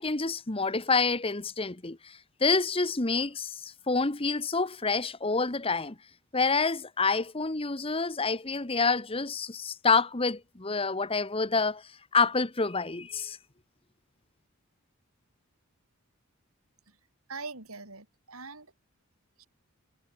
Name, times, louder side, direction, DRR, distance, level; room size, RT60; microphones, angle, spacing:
voice 1, 0.0-5.9 6.3-11.8 12.1-13.4, left 4 dB, 25° left, 1.2 m, -28 dB
voice 2, 17.3-18.7 19.4-19.5, right 4 dB, 75° right, 7.0 m, -42 dB
head